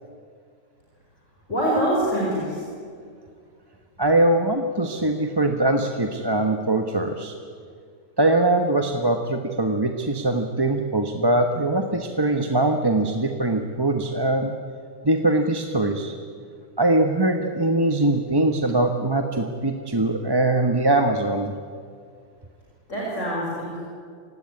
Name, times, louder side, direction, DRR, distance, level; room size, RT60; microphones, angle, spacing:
voice 1, 1.5-2.6 22.9-23.8, right 1 dB, 60° left, -4 dB, 5.5 m, -24 dB
voice 2, 4.0-7.3 8.2-14.5 15.0-16.2 16.8-21.5, right 2 dB, 20° right, 5 dB, 1.2 m, -22 dB
28.0 x 16.5 x 9.7 m, 2.1 s
omnidirectional pair, 1.4 m